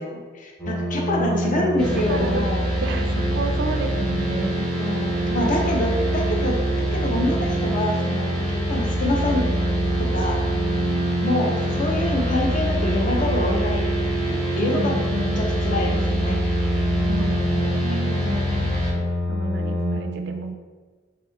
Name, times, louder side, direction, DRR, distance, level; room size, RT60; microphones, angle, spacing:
voice 1, 0.0-2.6 4.8-9.4 10.1-10.4 11.2-13.8 14.2-14.9 15.4-16.4 17.2-19.0 19.8-20.5, left 1 dB, 45° left, 0 dB, 0.5 m, -27 dB
sound 1, 0.6-20.0, equal, 20° left, 1.3 m, -26 dB
voice 2, 1.2-1.7 2.1-2.4 2.8-4.9 5.2-5.9 6.3-6.6 14.5-16.4 17.1-18.7 19.3-20.5, right 2 dB, 65° right, 6 dB, 0.3 m, -32 dB
sound 2, 1.8-18.9, right 1 dB, ahead, 0.6 m, -27 dB
Brass instrument, 2.8-12.3, right 1 dB, 90° left, 0.8 m, -38 dB
3.5 x 2.9 x 2.2 m, 1.4 s
head